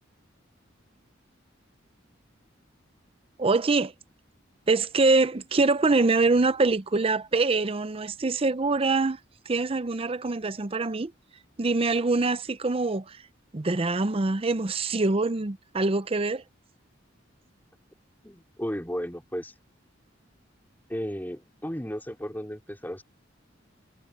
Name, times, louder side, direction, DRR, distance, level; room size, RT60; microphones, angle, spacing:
voice 1, 3.4-3.9 4.7-9.2 9.5-11.1 11.6-13.2 13.5-16.4, right 3 dB, 30° right, 0.6 m, -24 dB
voice 2, 18.2-19.5 20.9-23.0, equal, 10° left, 3.6 m, -34 dB
head